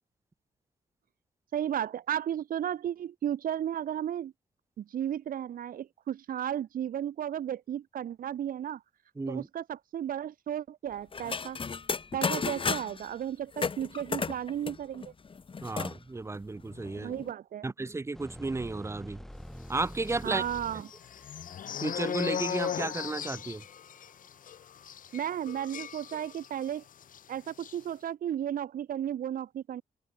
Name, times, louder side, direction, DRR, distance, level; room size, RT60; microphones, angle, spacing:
voice 1, 1.5-4.3 4.8-8.8 9.3-11.6 12.1-15.1 17.0-17.7 20.2-20.9 25.1-26.8 27.3-29.8, right 10 dB, 70° right, 1.0 m, -34 dB
voice 2, 9.2-9.5 15.6-17.1 17.6-19.2 19.7-20.4 21.8-23.6, right 3 dB, 20° right, 1.5 m, -33 dB
sound 1, 11.1-13.1 13.5-16.0 16.3-16.4 16.7-17.3, left 5 dB, 35° left, 4.0 m, -33 dB
sound 2, 18.1-24.4 24.6-24.9, equal, 5° left, 5.7 m, -47 dB
sound 3, 20.0-26.7 27.0-27.2 27.5-27.8, left 9 dB, 65° left, 1.7 m, -37 dB
open air
wide cardioid pair, 130°, 15 cm